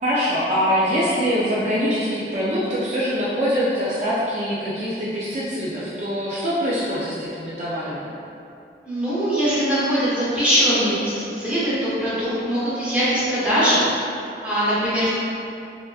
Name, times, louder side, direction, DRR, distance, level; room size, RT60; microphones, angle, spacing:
voice 1, 0.0-8.1, equal, 40° right, -8 dB, 0.4 m, -23 dB
voice 2, 8.8-13.8 14.4-15.1, equal, 5° right, -12 dB, 0.8 m, -21 dB
3.3 x 2.8 x 2.3 m, 2.7 s
head